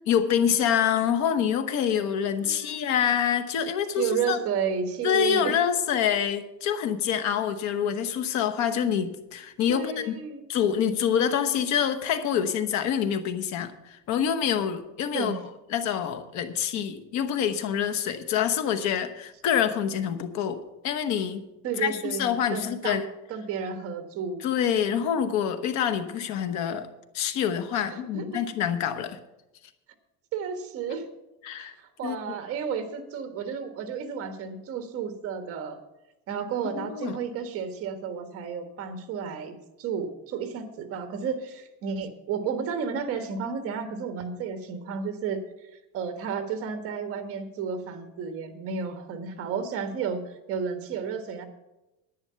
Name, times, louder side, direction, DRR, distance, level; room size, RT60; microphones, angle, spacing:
voice 1, 0.1-4.4 5.0-10.2 10.5-15.4 15.7-21.4 21.8-23.1 24.4-26.9 27.1-29.2 31.4-31.7 32.0-32.2 36.7-37.2, left 8 dB, 65° left, 8 dB, 1.1 m, -26 dB
voice 2, 2.4-2.9 4.0-5.5 9.7-10.4 15.1-15.4 21.6-23.0 23.3-24.4 27.8-28.2 30.3-31.0 31.6-35.8 36.3-45.4 45.9-51.5, right 6 dB, 50° right, 7 dB, 1.5 m, -32 dB
10.5 x 10.5 x 5.7 m, 0.96 s
cardioid pair, 170°, 31 cm